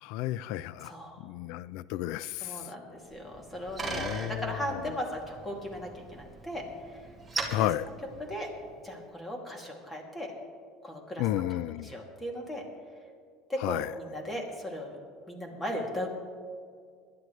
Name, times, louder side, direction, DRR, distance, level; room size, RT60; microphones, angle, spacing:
voice 1, 0.0-0.9 1.2-2.7 3.8-5.0 7.4-7.9 11.2-12.0 13.6-13.9, left 14 dB, 70° left, 19 dB, 0.4 m, -32 dB
voice 2, 0.8-1.2 2.4-6.6 6.9-7.0 7.6-7.7 8.3-8.5 8.8-10.3 10.8-11.4 11.8-12.6 13.5-15.0 15.3-16.1, equal, 15° left, 1 dB, 2.6 m, -37 dB
Bicycle, 3.1-8.8, right 3 dB, 10° right, 2.3 m, -40 dB
21.0 x 11.5 x 3.2 m, 2.1 s
supercardioid pair, 120°, 0 cm